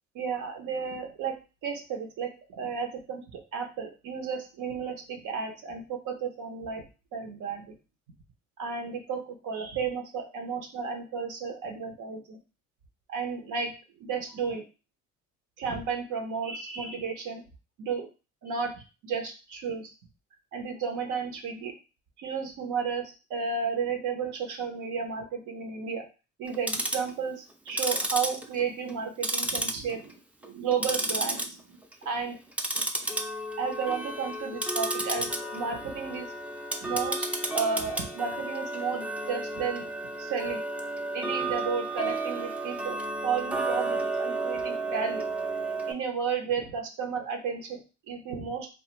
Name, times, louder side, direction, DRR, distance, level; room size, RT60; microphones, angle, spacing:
voice 1, 0.1-1.4 1.6-6.8 7.1-7.7 8.6-12.4 13.1-13.7 14.0-14.6 15.6-17.4 17.8-18.1 18.4-18.7 19.0-19.9 20.5-21.7 22.2-26.0 26.4-30.1 30.4-31.8 32.0-32.4 33.6-36.3 36.8-39.9 40.2-40.6 41.1-43.0 43.2-45.2 45.9-47.8 48.1-48.7, right 6 dB, 80° right, 4 dB, 0.7 m, -33 dB
Tick-tock, 26.5-27.1 27.7-29.0 29.2-30.1 30.4-31.5 31.8-32.1 32.5-45.9, right 2 dB, 5° right, 0.3 m, -32 dB
2.4 x 2.3 x 2.9 m, 0.31 s
cardioid pair, 90°, 30 cm